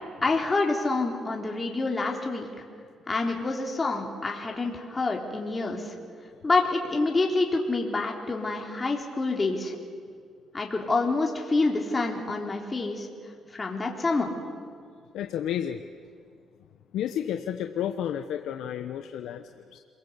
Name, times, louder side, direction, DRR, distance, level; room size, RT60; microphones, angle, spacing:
voice 1, 0.2-2.6 3.1-5.9 6.4-9.8 10.5-13.1 13.5-14.3, left 3 dB, 25° left, 0 dB, 3.8 m, -27 dB
voice 2, 15.1-15.8 16.9-19.8, left 10 dB, 80° left, 7 dB, 1.0 m, -31 dB
28.0 x 21.5 x 8.3 m, 2.1 s
cardioid pair, 90°, 0 cm